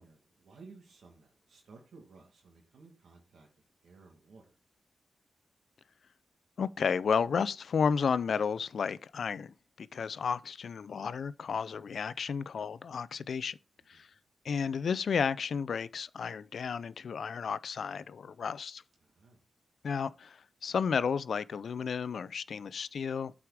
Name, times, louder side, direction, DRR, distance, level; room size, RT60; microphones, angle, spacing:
voice 1, 0.0-3.5 3.8-4.5 19.0-19.4, right 4 dB, 85° right, 1.8 m, -56 dB
voice 2, 6.6-13.6 13.9-14.1 14.4-18.8 19.8-23.3, left 6 dB, 75° left, 0.4 m, -32 dB
8.5 x 4.8 x 4.7 m
cardioid pair, 80°, 0 cm